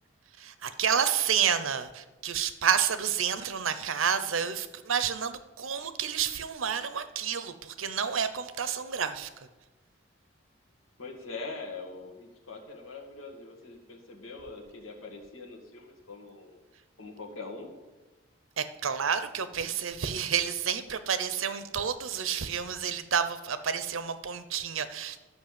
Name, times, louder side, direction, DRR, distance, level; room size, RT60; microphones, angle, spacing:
voice 1, 0.4-9.3 18.6-25.2, right 7 dB, 80° right, 12 dB, 0.7 m, -30 dB
voice 2, 11.0-16.6 17.0-17.7, left 3 dB, 90° left, 2 dB, 1.9 m, -43 dB
11.5 x 5.7 x 7.5 m, 1.2 s
head